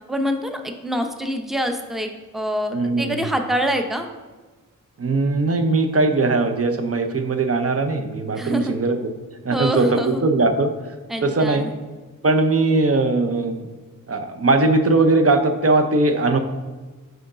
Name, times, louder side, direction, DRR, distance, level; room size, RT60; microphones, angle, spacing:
voice 1, 0.1-4.1 8.3-8.8 9.5-10.2 11.1-11.7, equal, ahead, 6 dB, 0.6 m, -25 dB
voice 2, 2.7-3.3 5.0-9.1 9.4-10.7 11.2-11.7 12.2-13.7 14.1-16.4, right 3 dB, 45° right, 6 dB, 0.7 m, -20 dB
5.0 x 3.9 x 4.9 m, 1.3 s
cardioid pair, 50°, 34 cm